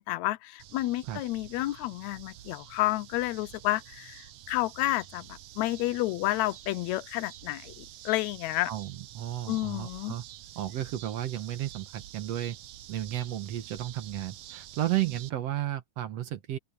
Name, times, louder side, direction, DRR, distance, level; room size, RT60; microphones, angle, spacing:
voice 1, 0.0-8.7 9.5-10.1, left 17 dB, 80° left, 1.7 m, -30 dB
sound 1, 0.6-15.3, right 13 dB, 85° right, 1.3 m, -48 dB
voice 2, 8.7-10.2 10.6-12.6 12.9-16.6, right 13 dB, 65° right, 1.9 m, -33 dB
open air
omnidirectional pair, 3.6 m